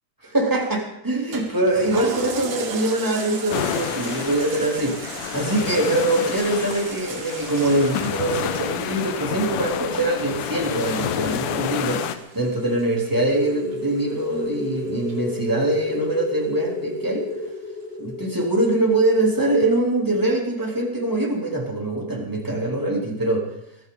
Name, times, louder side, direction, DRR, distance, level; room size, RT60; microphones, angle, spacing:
voice 1, 0.2-17.3 18.0-23.5, right 1 dB, 5° right, -1 dB, 2.8 m, -23 dB
Toilet flush, 1.3-16.1 16.6-16.7, right 4 dB, 75° right, 3.7 m, -38 dB
sound 1, 3.5-12.2, left 9 dB, 85° left, 2.6 m, -29 dB
sound 2, 13.1-21.5, left 2 dB, 30° left, 1.1 m, -33 dB
22.5 x 15.0 x 3.9 m, 0.80 s
omnidirectional pair, 3.6 m